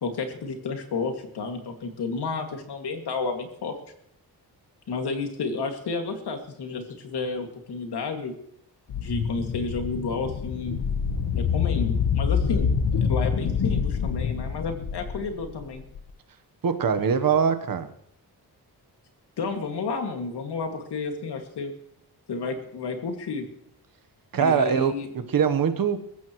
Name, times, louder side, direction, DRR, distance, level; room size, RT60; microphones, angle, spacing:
voice 1, 0.0-3.7 4.9-8.3 9.0-10.8 11.4-15.8 19.4-21.7 22.3-23.5 24.3-25.1, left 4 dB, 80° left, 4 dB, 2.3 m, -31 dB
sound 1, 8.9-16.0, left 6 dB, 60° left, 1.1 m, -26 dB
voice 2, 16.6-17.9 24.3-26.0, right 7 dB, 60° right, 9 dB, 1.2 m, -23 dB
22.5 x 14.5 x 3.1 m, 0.72 s
wide cardioid pair, 170°, 39 cm